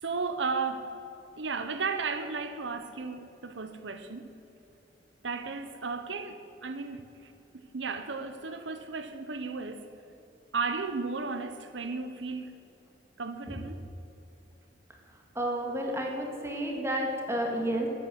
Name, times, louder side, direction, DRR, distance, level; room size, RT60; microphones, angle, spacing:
voice 1, 0.0-1.0 1.4-4.3 5.2-9.9 10.5-12.5 13.2-13.8, right 4 dB, 85° right, 0.9 m, -34 dB
voice 2, 15.4-17.9, right 1 dB, 15° right, 2.1 m, -31 dB
14.0 x 9.0 x 7.8 m
head